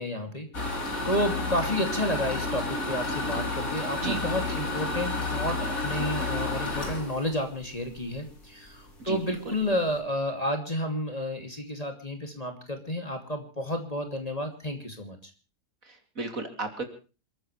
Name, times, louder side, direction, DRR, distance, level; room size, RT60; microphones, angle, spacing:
voice 1, 0.0-15.2, equal, 20° left, 5 dB, 2.8 m, -31 dB
sound 1, 0.5-8.3 8.7-8.8 9.2-9.3 9.5-9.9, left 2 dB, 55° left, 4.2 m, -31 dB
voice 2, 15.9-16.8, right 2 dB, 55° right, 6 dB, 3.3 m, -34 dB
28.0 x 14.5 x 3.3 m, 0.34 s
omnidirectional pair, 1.7 m